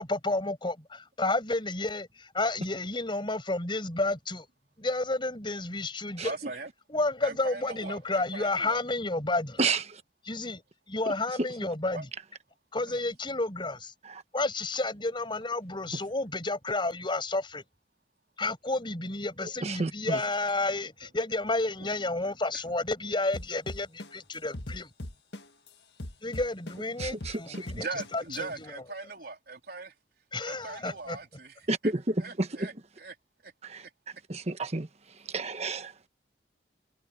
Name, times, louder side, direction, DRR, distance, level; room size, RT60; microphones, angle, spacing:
voice 1, 0.0-4.5 4.8-6.3 6.9-9.6 10.2-10.6 10.9-12.1 12.7-13.9 14.3-17.6 18.4-24.9 26.2-27.9 28.1-28.7 30.3-31.2, left 2 dB, 30° left, 6.1 m, -31 dB
voice 2, 6.2-6.7 7.2-8.8 11.9-12.0 12.8-12.9 21.0-21.1 22.5-22.6 27.7-29.9 30.4-31.9 32.2-33.2 33.4-33.5, right 3 dB, 60° right, 4.0 m, -40 dB
voice 3, 19.8-20.2 31.7-32.5 33.7-33.8 34.3-34.9 35.3-35.9, right 3 dB, 40° right, 1.3 m, -29 dB
sound 1, 23.3-25.7 26.0-28.4, left 1 dB, 70° left, 1.6 m, -39 dB
head